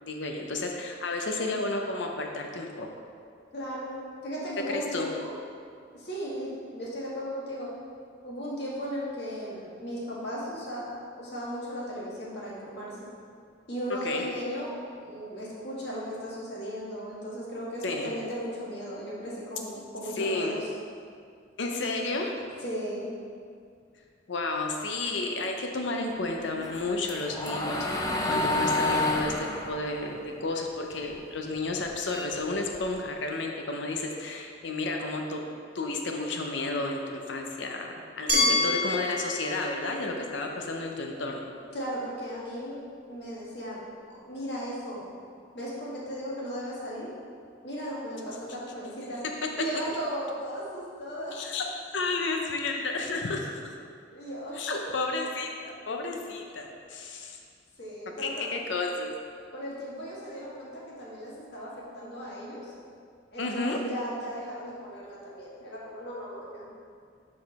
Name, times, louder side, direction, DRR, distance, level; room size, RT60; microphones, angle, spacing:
voice 1, 0.0-2.9 4.7-5.1 14.0-14.3 17.8-18.1 20.2-20.6 21.6-22.3 24.3-35.4 35.7-41.5 51.3-51.7 51.9-53.7 54.5-55.5 55.9-57.4 58.2-59.1 63.4-63.8, left 2 dB, 75° left, 2 dB, 0.7 m, -32 dB
voice 2, 3.5-3.9 4.2-5.3 5.9-7.7 8.2-13.1 13.7-14.7 15.0-20.6 22.6-23.1 38.3-38.6 41.7-43.8 44.1-45.0 45.5-47.1 47.6-49.2 49.6-51.5 54.1-54.8 57.8-58.6 59.5-62.7 63.3-66.7, equal, 60° left, -6 dB, 1.6 m, -36 dB
sound 1, 26.6-31.2 31.5-33.1, left 2 dB, 20° left, 0.5 m, -29 dB
Glass, 38.3-41.2, left 2 dB, 45° right, 1.3 m, -29 dB
6.1 x 4.9 x 4.1 m, 2.2 s
head